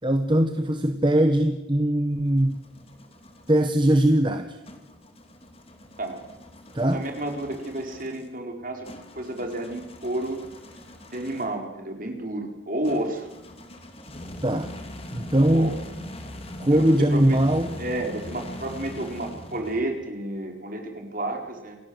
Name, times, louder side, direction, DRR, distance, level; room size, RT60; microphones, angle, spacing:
voice 1, 0.0-2.6 3.5-4.6 6.7-7.0 14.4-14.7 15.1-15.7 16.6-17.7, right 1 dB, 25° right, 8 dB, 1.1 m, -21 dB
sound 1, 1.9-3.7 4.6-11.7 12.8-20.1, left 1 dB, 30° left, 2.9 m, -42 dB
voice 2, 6.9-8.9 9.1-10.4 11.1-13.3 15.4-15.7 16.7-17.4 17.8-21.8, right 1 dB, 45° right, 3 dB, 4.5 m, -31 dB
28.5 x 18.0 x 8.0 m, 0.97 s
head